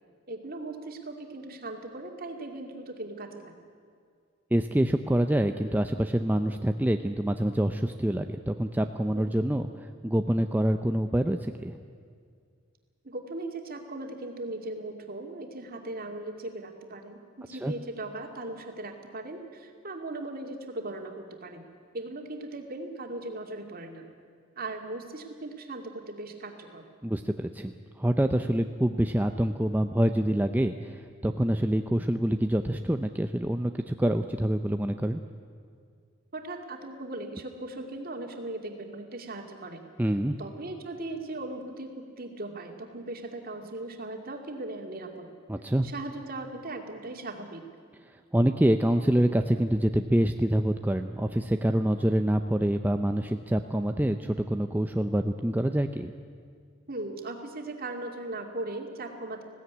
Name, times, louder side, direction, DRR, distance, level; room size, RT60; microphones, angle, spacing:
voice 1, 0.3-3.5 9.1-9.2 13.0-21.7 21.9-24.1 24.6-26.8 36.3-39.8 40.4-45.3 45.8-47.6 56.9-59.4, right 2 dB, 45° right, 3 dB, 2.4 m, -38 dB
voice 2, 4.5-11.8 17.6-17.7 27.0-27.7 28.0-35.2 40.0-40.4 45.5-45.9 48.3-56.1, right 1 dB, 10° right, 6 dB, 0.5 m, -26 dB
20.5 x 16.0 x 9.5 m, 2.2 s
head